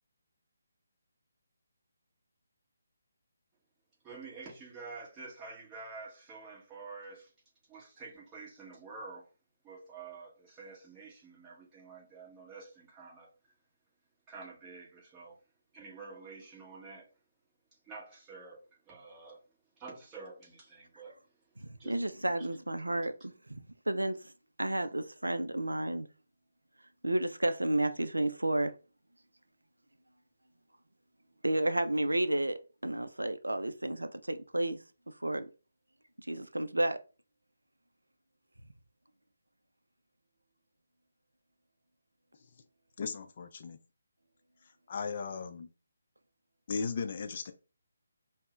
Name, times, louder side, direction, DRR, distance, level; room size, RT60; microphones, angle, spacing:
voice 1, 4.0-7.3 7.7-9.3 9.6-13.3 14.3-15.4 15.7-17.1 17.8-19.4 19.8-21.2 21.6-21.9 22.4-22.5, right 4 dB, 15° right, 1.3 m, -48 dB
voice 2, 21.7-24.3 24.6-26.1 27.0-28.7 31.4-34.8 35.2-35.5 36.3-37.0, right 1 dB, 85° right, 0.4 m, -31 dB
voice 3, 43.0-43.8 44.6-45.7 46.7-47.5, left 5 dB, 40° left, 0.4 m, -37 dB
5.2 x 2.0 x 2.4 m
figure-of-eight pair, 145°, 0 cm